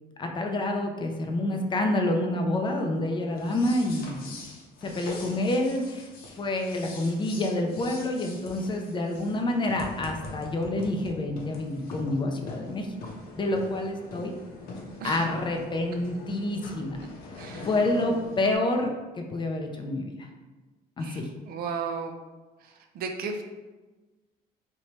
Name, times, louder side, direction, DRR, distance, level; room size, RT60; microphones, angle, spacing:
voice 1, 0.2-4.4 4.8-6.1 6.4-12.9 13.3-14.3 15.0-17.0 17.6-18.9 19.2-20.3 21.0-21.3, left 1 dB, 30° left, 3 dB, 0.4 m, -28 dB
sound 1, 3.3-18.6, left 2 dB, 65° left, 0.6 m, -43 dB
voice 2, 17.4-17.7 21.0-22.2 22.6-23.4, right 5 dB, 65° right, 4 dB, 0.4 m, -35 dB
2.8 x 2.2 x 3.0 m, 1.2 s
cardioid pair, 110°, 17 cm